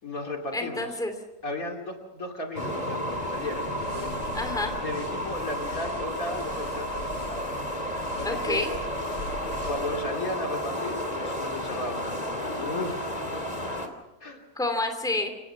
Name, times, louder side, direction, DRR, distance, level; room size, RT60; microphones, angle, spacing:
voice 1, 0.0-0.9 1.4-4.2 4.8-7.6 8.1-8.7 9.1-9.2 9.6-13.0 14.2-14.4, left 2 dB, 55° left, 2 dB, 3.2 m, -35 dB
voice 2, 0.5-1.1 4.3-4.8 8.2-8.7 14.6-15.3, left 2 dB, ahead, 5 dB, 2.7 m, -29 dB
sound 1, 2.6-13.9, equal, 25° left, 2.6 m, -32 dB
sound 2, 3.0-10.0, left 2 dB, 90° left, 5.2 m, -43 dB
28.5 x 17.0 x 6.0 m, 1.0 s
omnidirectional pair, 1.8 m